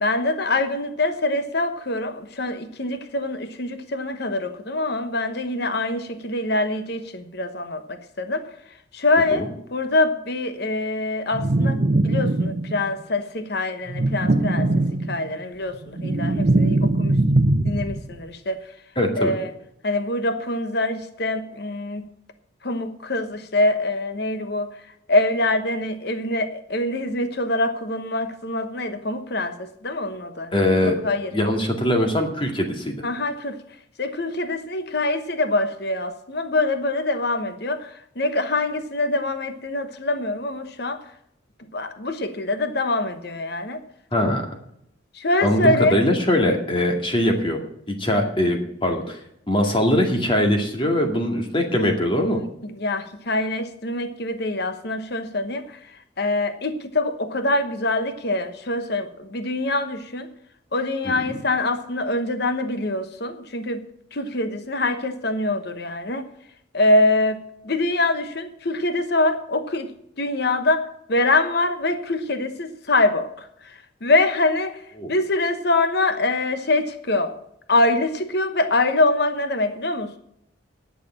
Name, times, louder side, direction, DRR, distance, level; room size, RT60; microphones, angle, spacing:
voice 1, 0.0-8.5 8.9-11.8 12.0-14.7 15.1-17.1 17.6-18.6 19.2-19.5 19.8-22.0 22.6-24.7 25.1-30.5 30.8-31.3 33.0-33.6 34.0-41.0 41.7-43.8 45.1-46.0 52.2-52.4 52.8-55.8 56.2-60.3 60.7-63.8 64.1-66.3 66.7-69.9 70.2-74.8 75.1-77.3 77.7-80.2, left 2 dB, 55° left, 9 dB, 1.1 m, -24 dB
sound 1, 11.3-12.9 13.9-15.4 15.7-18.1, right 2 dB, 45° right, 0.7 m, -21 dB
voice 2, 19.0-19.3 30.5-30.9 31.3-33.1 44.1-44.5 45.4-47.6 47.9-49.2 49.5-52.4 61.0-61.4 75.0-75.1, left 1 dB, 25° left, 3 dB, 2.1 m, -22 dB
10.5 x 6.8 x 8.6 m, 0.73 s
head